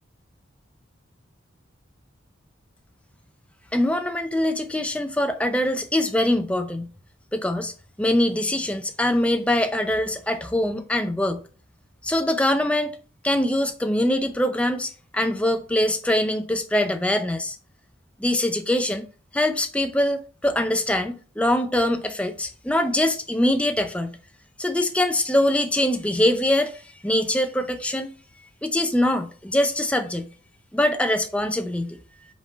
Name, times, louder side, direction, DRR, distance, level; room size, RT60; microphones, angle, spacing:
voice 1, 3.7-6.9 7.3-7.7 8.0-11.4 12.0-12.9 13.2-17.6 18.2-19.1 19.3-24.2 24.6-28.2 28.6-30.3 30.7-32.0, left 1 dB, 5° left, 0.5 m, -23 dB
5.3 x 3.7 x 5.1 m
head